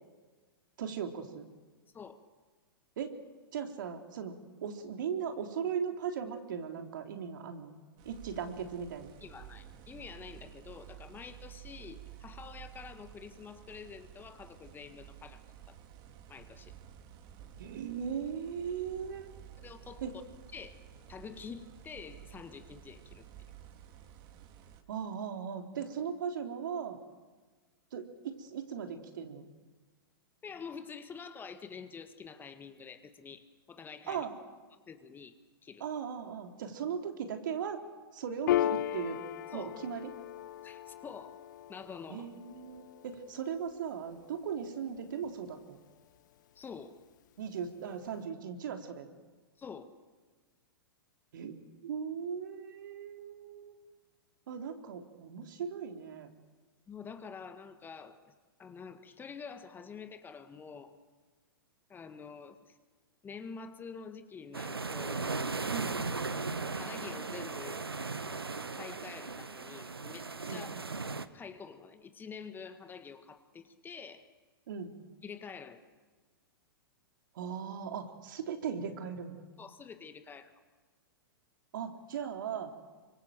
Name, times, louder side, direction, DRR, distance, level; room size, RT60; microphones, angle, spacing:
voice 1, 0.8-1.5 3.0-3.2 3.5-4.3 4.6-7.7 8.0-9.1 17.6-19.3 20.0-20.1 24.9-27.0 27.9-29.5 34.1-34.3 35.8-37.8 38.1-39.2 39.5-40.1 42.1-45.8 47.4-49.1 51.3-51.6 51.8-53.7 54.5-56.3 65.7-66.0 70.5-70.6 74.7-75.0 77.3-79.3 81.7-82.7, right 7 dB, 55° right, 5 dB, 3.3 m, -38 dB
sound 1, 8.0-24.8, right 10 dB, 35° right, 2.7 m, -52 dB
voice 2, 9.2-15.8 16.3-16.8 19.6-20.0 20.5-20.7 21.1-23.3 30.4-34.3 34.9-35.3 35.6-35.8 39.5-39.8 40.6-41.4 41.7-42.3 46.6-47.0 49.6-49.9 56.9-58.3 58.6-60.9 61.9-62.8 63.2-65.3 66.7-67.9 68.3-70.8 71.3-74.3 75.2-75.8 79.6-80.5, left 6 dB, 15° left, 9 dB, 1.8 m, -47 dB
Piano, 38.5-45.4, left 12 dB, 50° left, 0.8 m, -37 dB
sound 2, 64.5-71.3, right 4 dB, 80° right, 1.2 m, -37 dB
29.0 x 25.0 x 7.6 m, 1.4 s
figure-of-eight pair, 105°, 12 cm